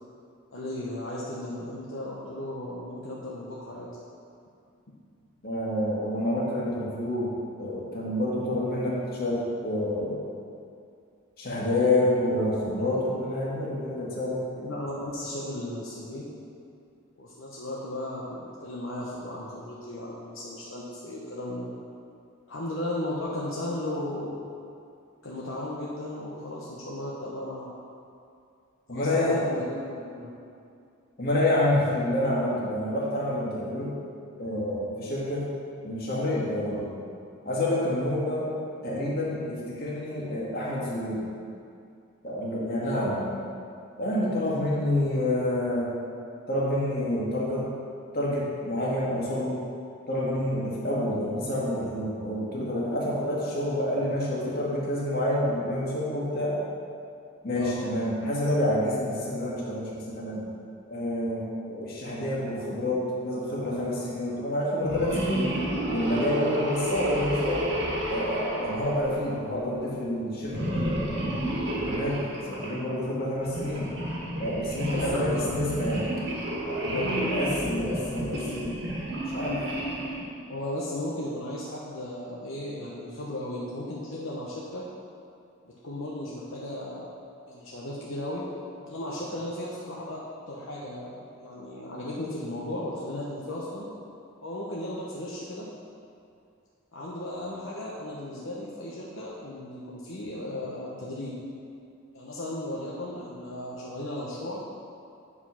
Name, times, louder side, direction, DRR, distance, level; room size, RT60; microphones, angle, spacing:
voice 1, 0.5-3.9 4.9-5.0 14.6-16.3 17.2-21.7 22.5-24.4 25.2-27.7 28.9-30.3 36.7-36.9 42.7-43.2 57.5-57.8 66.8-66.9 74.9-75.5 76.9-77.2 80.5-84.9 85.6-87.1 87.5-88.5 88.8-91.1 91.4-93.9 94.4-95.7 96.9-101.3 102.1-104.6, left 1 dB, 65° left, -6 dB, 0.9 m, -35 dB
voice 2, 5.4-7.3 7.6-10.2 11.4-14.4 28.9-29.4 31.2-33.9 34.4-35.5 35.8-36.9 37.5-38.5 38.8-41.2 42.2-43.3 44.0-45.9 46.5-47.6 48.1-49.6 50.1-56.5 57.4-60.5 60.9-65.5 65.9-67.6 68.1-70.9 71.7-73.9 74.4-76.1 76.7-78.8 79.3-79.6, left 1 dB, 45° left, -6 dB, 1.8 m, -28 dB
sound 1, 64.8-69.6 70.5-72.8 73.4-80.2, right 1 dB, 55° right, 1.6 m, -31 dB
8.3 x 4.9 x 5.6 m, 2.5 s
head